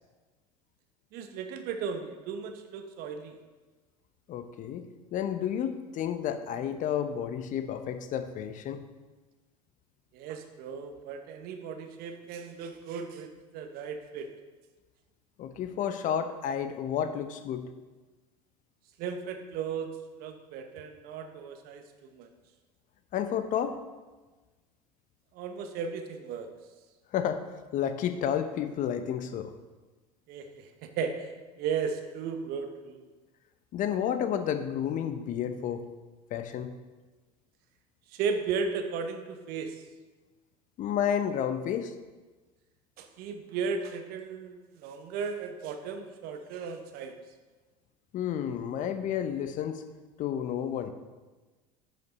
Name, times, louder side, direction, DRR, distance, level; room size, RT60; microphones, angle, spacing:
voice 1, 1.1-3.4 10.1-13.3 13.5-14.3 19.0-19.9 20.2-22.3 25.3-26.5 30.3-31.3 31.6-33.0 38.1-39.8 43.0-47.1, right 6 dB, 55° right, 6 dB, 1.1 m, -35 dB
voice 2, 4.3-4.8 5.1-8.8 15.4-17.7 23.1-23.8 27.1-27.5 27.7-29.5 33.7-35.8 36.3-36.7 40.8-41.9 48.1-49.8 50.2-50.9, left 9 dB, 45° left, 9 dB, 0.8 m, -31 dB
10.5 x 5.8 x 4.2 m, 1.3 s
hypercardioid pair, 75°, 19 cm